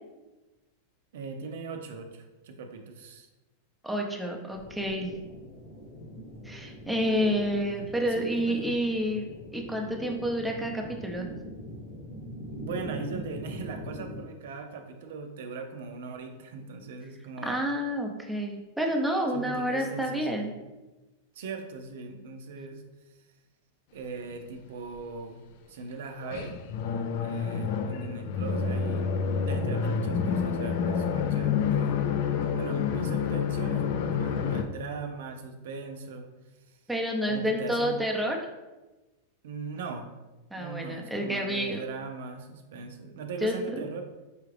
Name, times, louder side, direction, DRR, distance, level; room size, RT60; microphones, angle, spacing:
voice 1, 1.1-3.3 7.0-8.7 12.5-17.6 19.3-20.5 21.3-23.2 23.9-25.4 25.7-26.6 27.2-29.1 29.5-32.0 32.5-36.3 36.7-36.8 37.3-37.9 39.4-40.1 40.5-44.0, right 4 dB, 75° right, 4 dB, 0.5 m, -39 dB
voice 2, 3.8-5.1 6.4-11.3 17.4-20.5 36.9-38.4 40.5-41.8 43.4-43.8, equal, 5° right, 1 dB, 0.6 m, -29 dB
sound 1, 4.5-14.2, equal, 45° left, 1.0 m, -42 dB
sound 2, 26.2-34.6, left 6 dB, 60° left, 0.4 m, -28 dB
4.8 x 2.4 x 3.2 m, 1.1 s
hypercardioid pair, 125°, 0 cm